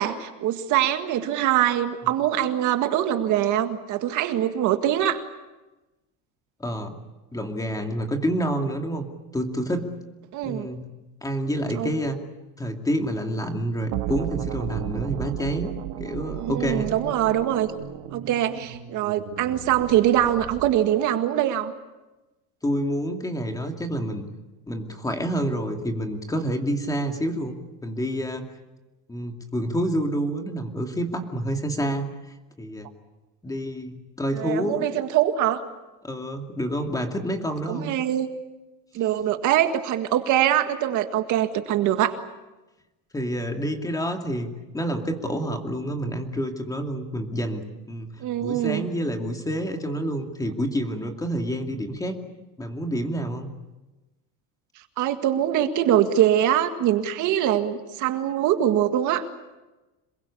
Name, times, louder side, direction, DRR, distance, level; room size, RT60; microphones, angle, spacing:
voice 1, 0.0-5.2 10.3-10.7 11.7-11.9 16.4-17.7 18.1-21.7 34.3-35.6 37.7-38.3 38.9-42.2 48.2-48.9 55.0-59.3, right 11 dB, 50° right, 7 dB, 1.9 m, -23 dB
voice 2, 6.6-7.0 7.3-9.1 9.3-9.9 10.4-10.9 11.2-12.2 12.6-15.7 16.0-16.9 22.6-24.2 24.7-27.6 27.8-28.5 29.1-32.9 33.4-34.9 36.0-37.9 43.1-52.2 52.6-53.5, equal, 10° left, 4 dB, 2.5 m, -28 dB
sound 1, 13.9-20.8, right 13 dB, 75° right, 2.1 m, -34 dB
27.0 x 22.0 x 8.5 m, 1.1 s
cardioid pair, 155°, 38 cm